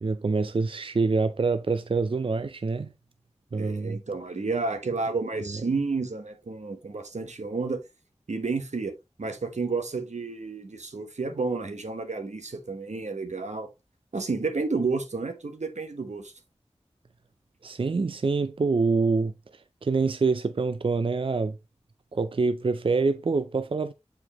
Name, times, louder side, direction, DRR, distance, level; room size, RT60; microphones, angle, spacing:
voice 1, 0.0-2.9 3.5-4.0 17.6-19.3 19.8-21.6 22.1-23.9, right 4 dB, 50° right, 0.4 m, -25 dB
voice 2, 3.5-7.8 8.3-13.7 14.1-16.3, right 4 dB, 90° right, 1.1 m, -31 dB
7.7 x 4.6 x 3.0 m
wide cardioid pair, 60°, 12 cm